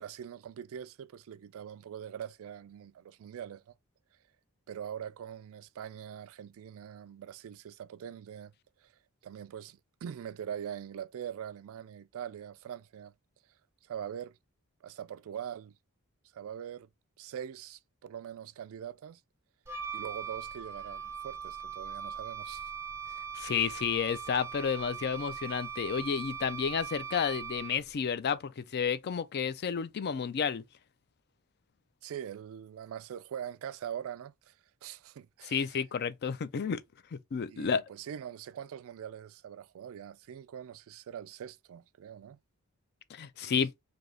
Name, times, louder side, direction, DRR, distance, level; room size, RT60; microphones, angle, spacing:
voice 1, 0.0-3.8 4.7-8.5 8.8-8.9 9.2-13.1 13.8-14.4 14.8-15.7 16.3-16.9 17.2-19.2 19.9-22.7 32.0-34.5 34.8-35.7 37.5-42.4 43.4-43.6, right 9 dB, 65° right, 0.3 m, -43 dB
Wind instrument woodwind instrument, 19.7-28.0, right 7 dB, 10° right, 0.5 m, -40 dB
voice 2, 23.3-30.6 35.5-36.8 37.1-37.8 43.1-43.7, left 6 dB, 45° left, 0.4 m, -31 dB
3.4 x 2.8 x 3.7 m
head